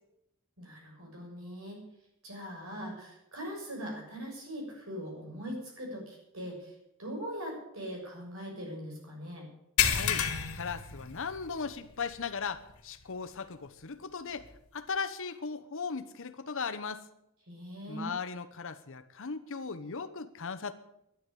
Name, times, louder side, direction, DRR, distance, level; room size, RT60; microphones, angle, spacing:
voice 1, 0.6-1.8 2.2-6.7 7.0-9.5 17.5-18.1, equal, 70° right, 0 dB, 6.5 m, -41 dB
sound 1, 9.8-11.7 12.0-12.2 12.7-12.8 14.4-14.5, left 8 dB, 90° left, 1.9 m, -30 dB
voice 2, 9.8-10.2 10.5-14.5 14.7-17.0 17.9-20.7, left 5 dB, 65° left, 12 dB, 1.0 m, -37 dB
11.5 x 11.5 x 8.4 m, 0.82 s
head